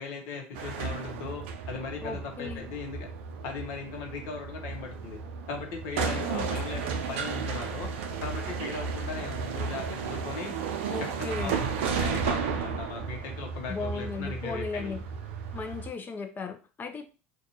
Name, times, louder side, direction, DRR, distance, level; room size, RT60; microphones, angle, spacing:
voice 1, 0.0-3.1 3.4-5.2 5.5-7.9 8.2-10.5 11.0-15.0, left 5 dB, 65° left, 3 dB, 0.9 m, -38 dB
sound 1, 0.5-15.9, right 5 dB, 75° right, 0.5 m, -33 dB
voice 2, 2.0-2.7 6.0-6.5 10.9-11.6 13.7-15.0 15.5-17.0, left 4 dB, 30° left, 6 dB, 0.6 m, -36 dB
2.5 x 2.3 x 2.8 m, 0.34 s
hypercardioid pair, 75°, 7 cm